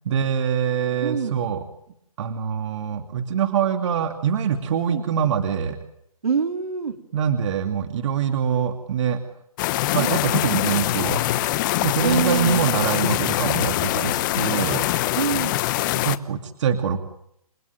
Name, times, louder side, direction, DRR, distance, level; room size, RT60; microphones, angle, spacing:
voice 1, 0.0-1.6 2.2-5.8 7.1-9.2 9.9-11.2 11.8-14.8 15.9-17.0, right 7 dB, 55° right, 6 dB, 2.6 m, -24 dB
voice 2, 1.0-1.4 4.9-5.1 6.2-7.0 10.0-10.2 12.0-12.8 15.1-15.6, right 6 dB, 80° right, 4 dB, 3.9 m, -26 dB
sound 1, 9.6-16.2, left 16 dB, 35° left, 1.0 m, -23 dB
29.5 x 19.0 x 9.3 m, 0.77 s
hypercardioid pair, 145°, 19 cm